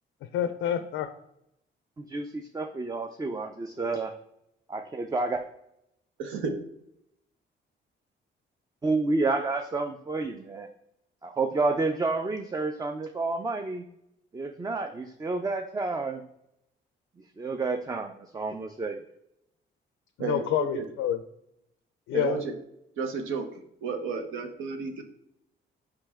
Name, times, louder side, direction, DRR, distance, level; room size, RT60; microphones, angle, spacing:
voice 1, 0.3-1.1 20.2-21.2 22.1-22.4, left 10 dB, 85° left, 9 dB, 0.4 m, -28 dB
voice 2, 2.1-4.1 4.7-5.4 8.8-10.7 11.2-13.8 14.3-16.2 17.4-19.0, right 3 dB, 20° right, 6 dB, 0.4 m, -30 dB
voice 3, 6.2-6.6 20.2-20.8 22.1-22.5 23.0-23.4 23.8-25.0, right 5 dB, 90° right, 5 dB, 0.8 m, -32 dB
4.9 x 3.2 x 3.4 m, 0.80 s
cardioid pair, 90°, 20 cm